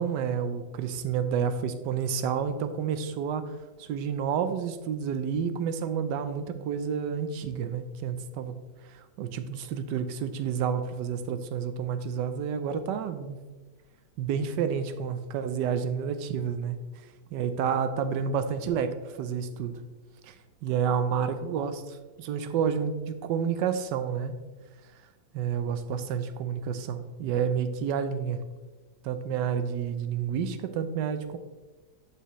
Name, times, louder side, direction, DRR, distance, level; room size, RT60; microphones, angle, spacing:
voice 1, 0.0-8.6 8.9-13.4 14.2-16.8 17.3-19.8 20.2-20.3 20.6-24.4 25.3-28.4 29.0-31.4, right 7 dB, 75° right, 10 dB, 1.2 m, -30 dB
11.0 x 4.6 x 3.1 m, 1.3 s
omnidirectional pair, 1.9 m